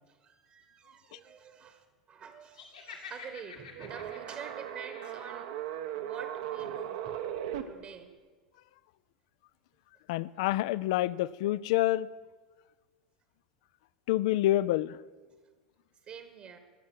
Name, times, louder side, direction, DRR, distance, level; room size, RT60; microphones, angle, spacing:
voice 1, 0.1-5.5 6.0-7.2 7.7-8.1 15.3-15.4 16.0-16.6, right 7 dB, 40° right, 8 dB, 1.3 m, -47 dB
Laughter, 2.5-5.5, left 6 dB, 80° left, 2.3 m, -49 dB
sound 1, 3.8-7.6, right 11 dB, 60° right, 1.0 m, -37 dB
voice 2, 10.1-12.1 14.1-15.0, left 15 dB, 60° left, 19 dB, 0.4 m, -27 dB
20.0 x 7.4 x 6.4 m, 1.4 s
figure-of-eight pair, 80°, 4 cm